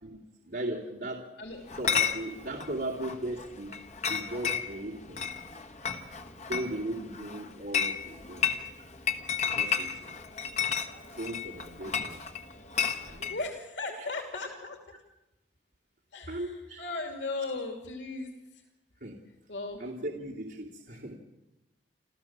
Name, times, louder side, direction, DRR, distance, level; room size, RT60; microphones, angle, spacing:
voice 1, 0.0-1.3 1.7-3.8 4.1-5.3 6.5-8.9 9.3-10.2 11.1-12.2 13.0-13.3 13.9-14.1 16.3-16.9 19.0-19.2 19.8-21.1, right 1 dB, 60° right, -3 dB, 2.6 m, -38 dB
Chatter / Chink clink, 1.7-13.4, left 7 dB, 40° left, 1.4 m, -33 dB
voice 2, 13.3-14.8 16.1-18.6 19.5-19.8, left 3 dB, 85° left, 4 dB, 3.0 m, -37 dB
28.5 x 14.0 x 7.4 m, 0.96 s
head